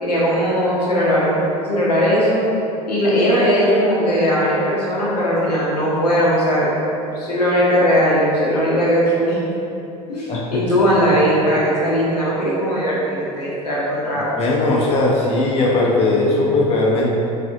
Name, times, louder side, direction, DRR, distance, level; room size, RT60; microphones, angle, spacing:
voice 1, 0.0-2.4 2.9-6.7 7.1-9.4 10.1-14.3, equal, 85° left, -7 dB, 0.8 m, -18 dB
voice 2, 10.3-10.6 14.3-17.1, left 2 dB, 30° left, -3 dB, 0.6 m, -18 dB
4.1 x 2.3 x 2.5 m, 2.9 s
hypercardioid pair, 75°, 20 cm